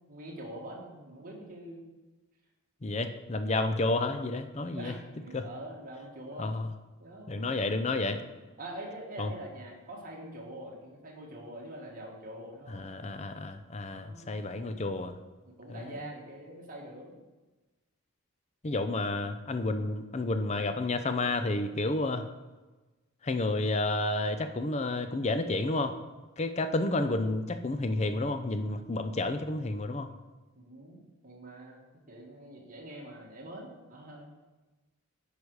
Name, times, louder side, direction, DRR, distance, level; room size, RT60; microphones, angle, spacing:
voice 1, 0.1-1.8 4.7-6.5 7.0-7.7 8.2-13.0 13.8-14.9 15.4-17.1 30.5-31.8 32.1-34.3, right 1 dB, 40° right, -2 dB, 1.7 m, -45 dB
voice 2, 2.8-4.9 5.3-5.4 6.4-6.7 7.3-8.2 9.2-9.3 12.7-15.2 15.7-15.9 18.6-22.3 23.2-25.9 26.4-30.1, left 2 dB, 30° left, 9 dB, 0.5 m, -30 dB
9.7 x 5.1 x 4.7 m, 1.2 s
head